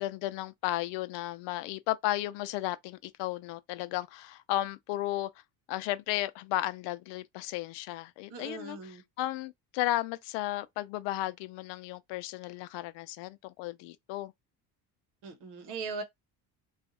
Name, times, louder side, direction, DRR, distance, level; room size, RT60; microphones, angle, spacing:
voice 1, 0.0-5.3 5.7-14.3, left 15 dB, 90° left, 0.6 m, -34 dB
voice 2, 8.3-9.0 15.2-16.0, right 4 dB, 75° right, 1.2 m, -39 dB
2.5 x 2.3 x 4.0 m
cardioid pair, 160°, 41 cm